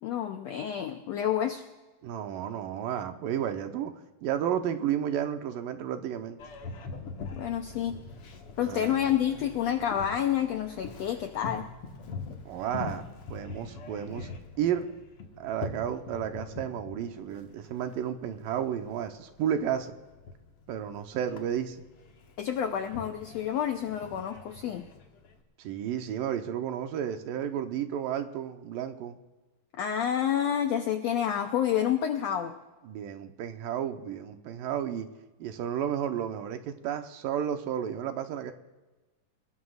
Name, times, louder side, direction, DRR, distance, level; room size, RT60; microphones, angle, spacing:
voice 1, 0.0-1.6 7.3-8.0 8.6-11.7 22.4-24.9 29.7-32.6, left 9 dB, 80° left, 5 dB, 1.5 m, -29 dB
voice 2, 2.0-3.9 4.2-6.4 8.6-9.0 12.5-13.0 13.3-14.3 14.6-14.9 15.4-19.9 20.7-21.8 25.6-29.2 32.8-35.1 35.4-38.5, right 9 dB, 80° right, 6 dB, 2.5 m, -32 dB
Boat Water vehicle, 6.4-25.4, left 4 dB, 55° left, 1.9 m, -44 dB
29.0 x 17.5 x 2.4 m, 1.2 s
omnidirectional pair, 4.0 m